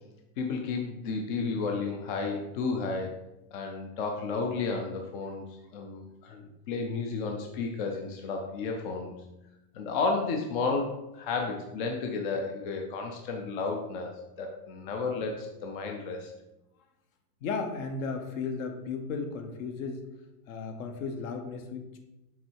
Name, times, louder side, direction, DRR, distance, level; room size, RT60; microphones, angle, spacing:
voice 1, 0.4-3.2 3.5-5.4 5.7-9.1 9.7-16.3, left 4 dB, 35° left, 2 dB, 0.5 m, -32 dB
voice 2, 17.4-20.0 20.5-22.0, left 4 dB, 55° left, 5 dB, 1.1 m, -35 dB
7.2 x 3.5 x 4.6 m, 0.96 s
supercardioid pair, 165°, 48 cm